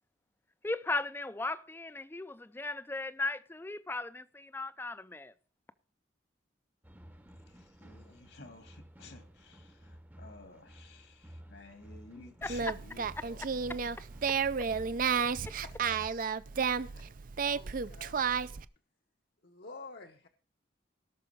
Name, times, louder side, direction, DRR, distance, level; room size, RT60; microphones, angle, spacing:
voice 1, 0.6-5.3 12.4-12.7 13.2-13.8, left 2 dB, 10° left, 0.4 m, -37 dB
sound 1, 6.8-16.1, equal, 10° right, 0.8 m, -53 dB
voice 2, 7.8-9.8 10.2-14.0, left 3 dB, 75° left, 2.0 m, -53 dB
Singing, 12.4-18.6, right 6 dB, 45° right, 0.4 m, -32 dB
voice 3, 15.5-16.0 16.9-17.1 17.4-18.4 19.4-20.3, left 3 dB, 55° left, 0.9 m, -50 dB
18.0 x 6.1 x 4.6 m
head